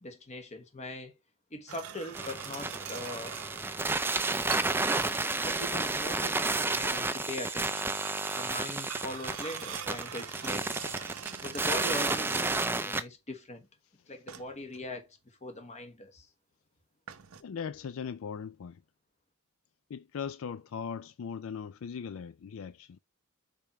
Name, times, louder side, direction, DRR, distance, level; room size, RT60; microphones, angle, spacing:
voice 1, 0.0-1.2 1.5-3.4 5.4-8.0 8.3-10.7 11.4-13.7 14.1-16.3, left 1 dB, 30° left, 1.2 m, -41 dB
sound 1, 1.7-5.9 7.1-12.9 14.3-14.9 17.1-17.4, right 9 dB, 80° right, 0.7 m, -44 dB
sound 2, 2.1-13.0, right 3 dB, 10° right, 0.4 m, -31 dB
voice 2, 17.4-18.8 19.9-23.0, left 6 dB, 65° left, 0.4 m, -39 dB
5.3 x 4.4 x 4.7 m
head